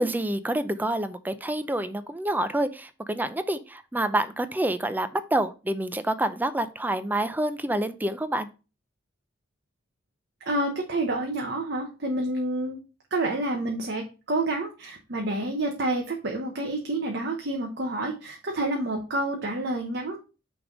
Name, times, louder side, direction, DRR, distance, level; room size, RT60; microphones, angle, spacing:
voice 1, 0.0-8.5, right 1 dB, 10° right, 12 dB, 0.4 m, -27 dB
voice 2, 10.5-12.8 13.1-20.2, right 2 dB, 60° right, 2 dB, 1.0 m, -28 dB
6.1 x 3.5 x 5.1 m, 0.32 s
head